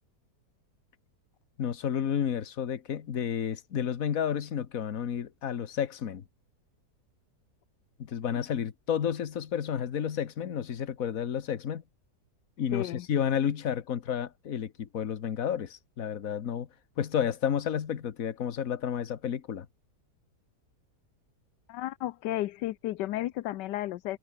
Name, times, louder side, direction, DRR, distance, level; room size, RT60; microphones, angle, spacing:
voice 1, 1.6-6.2 8.0-11.8 12.6-16.7 17.0-19.7, left 8 dB, 55° left, 1.6 m, -31 dB
voice 2, 12.7-13.1 21.7-24.2, left 15 dB, 90° left, 1.3 m, -33 dB
omnidirectional pair, 1.8 m